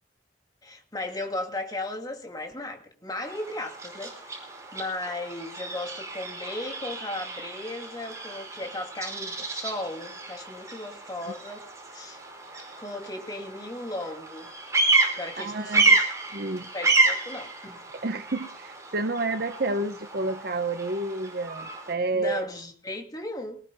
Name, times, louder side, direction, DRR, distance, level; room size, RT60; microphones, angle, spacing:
voice 1, 0.6-4.4 4.7-11.6 11.9-12.2 12.8-14.5 15.2-16.0 16.7-17.8 22.1-23.6, left 2 dB, 20° left, 2.7 m, -36 dB
Bird vocalization bird call bird song, 3.2-21.9, right 3 dB, 20° right, 5.0 m, -30 dB
voice 2, 15.4-15.9 16.3-16.7 18.0-22.5, right 2 dB, 60° right, 1.0 m, -29 dB
24.5 x 19.0 x 2.3 m
head